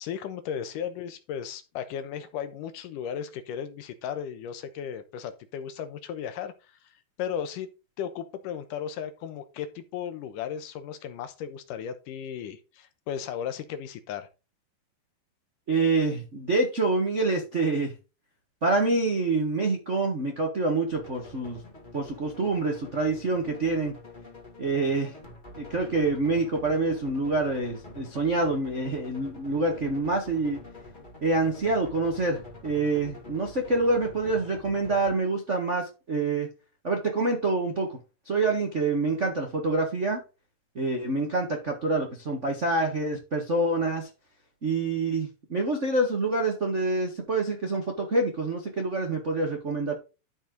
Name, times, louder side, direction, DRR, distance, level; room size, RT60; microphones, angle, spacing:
voice 1, 0.0-6.5 7.2-7.7 8.0-14.3, left 8 dB, 75° left, 2.4 m, -35 dB
voice 2, 15.7-17.9 18.6-21.6 21.9-23.9 24.6-25.1 25.6-30.6 31.2-36.5 36.8-38.0 38.2-40.2 40.7-44.1 44.6-49.9, right 3 dB, 70° right, 0.6 m, -26 dB
sound 1, 20.9-35.2, left 2 dB, 20° left, 1.6 m, -46 dB
12.0 x 4.9 x 3.8 m
omnidirectional pair, 4.1 m